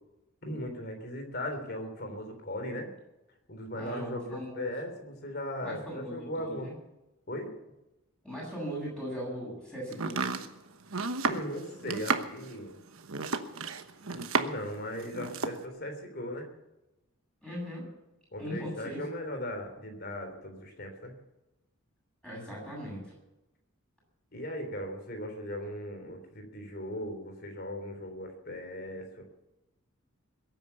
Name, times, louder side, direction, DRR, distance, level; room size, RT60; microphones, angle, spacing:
voice 1, 0.4-2.9 3.5-6.7 7.3-7.5 11.3-12.8 14.1-16.5 18.3-21.1 24.3-29.2, left 1 dB, 45° left, 5 dB, 3.3 m, -38 dB
voice 2, 3.7-4.6 5.6-6.7 8.2-10.2 17.4-17.9 18.4-19.1 22.2-23.1, equal, 5° left, -4 dB, 7.9 m, -39 dB
Domestic sounds home sounds, 9.9-14.7 15.0-15.6, right 4 dB, 75° right, 1.2 m, -32 dB
21.5 x 9.2 x 7.0 m, 0.96 s
head